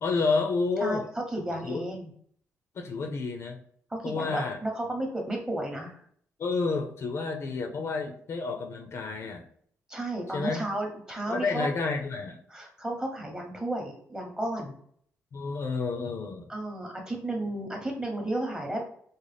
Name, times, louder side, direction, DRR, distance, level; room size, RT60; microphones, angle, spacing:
voice 1, 0.0-1.0 1.6-1.8 2.7-3.6 4.0-4.6 6.4-9.5 10.3-10.7 11.3-12.4 15.3-16.5, left 4 dB, 50° left, 4 dB, 0.5 m, -30 dB
voice 2, 1.3-2.1 3.9-6.0 9.9-11.7 12.5-14.8 16.5-18.8, right 1 dB, 15° right, 1 dB, 0.8 m, -33 dB
3.9 x 2.1 x 3.3 m, 0.62 s
cardioid pair, 120°, 6 cm